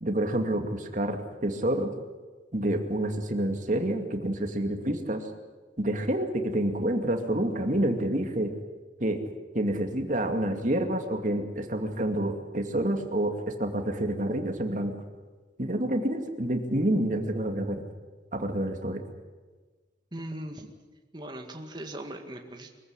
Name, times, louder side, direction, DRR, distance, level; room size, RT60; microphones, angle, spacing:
voice 1, 0.0-1.9 2.5-5.3 5.8-8.5 9.0-9.2 9.5-13.3 13.6-14.9 15.6-17.8 18.3-19.0, right 1 dB, 40° right, 5 dB, 2.4 m, -28 dB
voice 2, 20.1-20.7 21.1-22.7, right 1 dB, 25° right, 3 dB, 2.0 m, -39 dB
24.0 x 15.0 x 9.7 m, 1.4 s
head